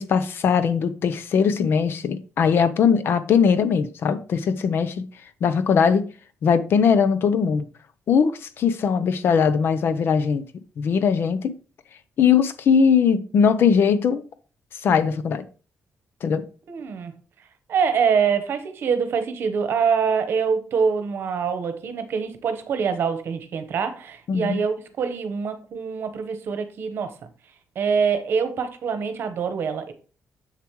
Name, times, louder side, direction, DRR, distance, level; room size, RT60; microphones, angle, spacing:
voice 1, 0.0-5.1 5.4-6.0 6.4-7.7 8.1-10.4 10.8-11.5 12.2-14.2 14.8-15.4 16.2-16.4 24.3-24.6, left 6 dB, 50° left, 0.7 m, -20 dB
voice 2, 16.7-17.1 17.7-27.1 27.7-29.9, right 6 dB, 55° right, 1.1 m, -24 dB
7.4 x 7.0 x 3.1 m
cardioid pair, 175°, 5 cm